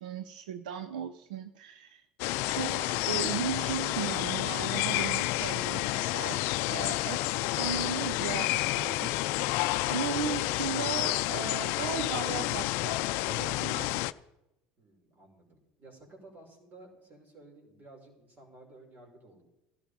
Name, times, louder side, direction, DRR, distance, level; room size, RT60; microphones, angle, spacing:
voice 1, 0.0-2.0 2.4-9.1 9.4-14.0, right 8 dB, 85° right, 11 dB, 0.7 m, -37 dB
sound 1, 2.2-14.1, left 19 dB, 70° left, 0.5 m, -30 dB
voice 2, 14.8-19.4, right 2 dB, 40° right, 1 dB, 5.9 m, -54 dB
15.5 x 12.5 x 5.2 m, 0.90 s
supercardioid pair, 95°, 4 cm